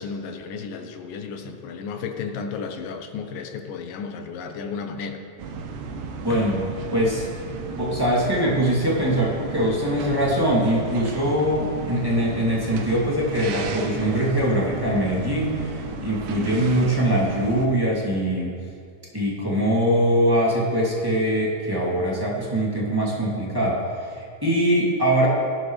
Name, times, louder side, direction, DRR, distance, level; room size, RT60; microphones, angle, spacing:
voice 1, 0.0-5.2 6.3-6.4, left 5 dB, 85° left, 6 dB, 2.6 m, -33 dB
sound 1, 5.4-17.7, right 4 dB, 75° right, 2.5 m, -34 dB
voice 2, 6.2-6.6 6.9-7.3 7.8-18.5 19.1-25.3, equal, 5° right, -7 dB, 2.2 m, -22 dB
18.5 x 12.0 x 3.3 m, 2.4 s
omnidirectional pair, 3.8 m